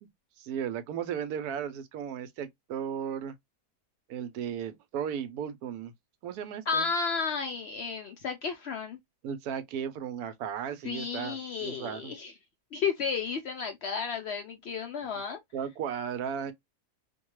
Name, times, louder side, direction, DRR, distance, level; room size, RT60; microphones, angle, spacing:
voice 1, 0.4-3.3 4.1-5.9 6.2-6.9 9.2-12.1 15.5-16.5, right 8 dB, 75° right, 1.0 m, -35 dB
voice 2, 6.7-9.0 10.8-12.3 12.7-15.4, left 5 dB, 75° left, 0.6 m, -32 dB
2.6 x 2.2 x 3.0 m
omnidirectional pair, 1.6 m